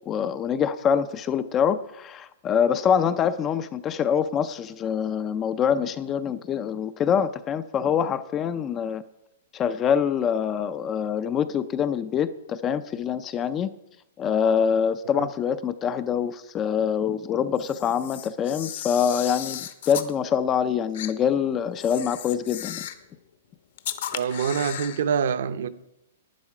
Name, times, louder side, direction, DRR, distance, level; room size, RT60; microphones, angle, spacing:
voice 1, 0.1-9.0 9.5-13.7 14.2-22.8, left 7 dB, 15° left, 0.4 m, -25 dB
Camera, 17.6-20.1 20.9-21.1 21.8-23.1 23.8-25.0, left 11 dB, 50° left, 0.9 m, -35 dB
voice 2, 24.1-25.7, right 7 dB, 60° right, 0.7 m, -25 dB
11.5 x 10.0 x 4.9 m
hypercardioid pair, 175°, 0 cm